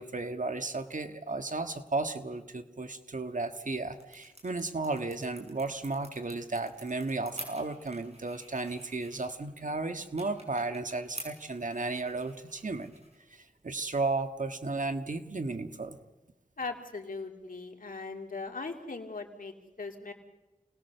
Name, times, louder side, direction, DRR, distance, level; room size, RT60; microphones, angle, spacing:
voice 1, 0.0-12.9 13.3-16.0, right 3 dB, 65° right, 7 dB, 1.6 m, -34 dB
sound 1, 3.3-14.9, right 1 dB, 50° right, 6.6 m, -51 dB
voice 2, 16.6-20.1, left 3 dB, 85° left, 3 dB, 2.6 m, -39 dB
28.5 x 19.5 x 6.8 m, 1.1 s
wide cardioid pair, 50°, 14 cm